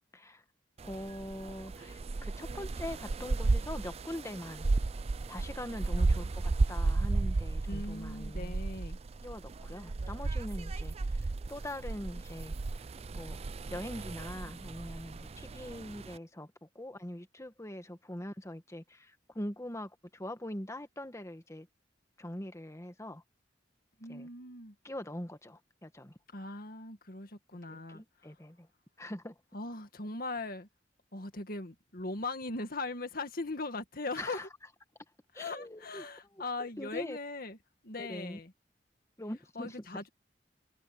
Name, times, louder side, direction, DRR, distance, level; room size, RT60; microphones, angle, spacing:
voice 1, 0.8-4.7 5.3-8.6 9.2-11.2 11.5-12.5 13.1-13.4 13.7-21.7 22.2-23.2 24.1-24.3 24.8-26.2 27.7-28.7 29.0-29.4 34.2-34.5 35.3-37.2 38.0-38.4 39.2-40.0, left 1 dB, 15° left, 1.6 m, -43 dB
sound 1, 0.8-16.2, right 3 dB, 35° right, 0.4 m, -34 dB
voice 2, 6.0-6.3 7.7-9.0 24.0-24.7 26.3-28.0 29.5-30.7 31.1-34.5 35.4-37.6 37.8-38.5 39.6-40.1, left 2 dB, 55° left, 2.0 m, -39 dB
head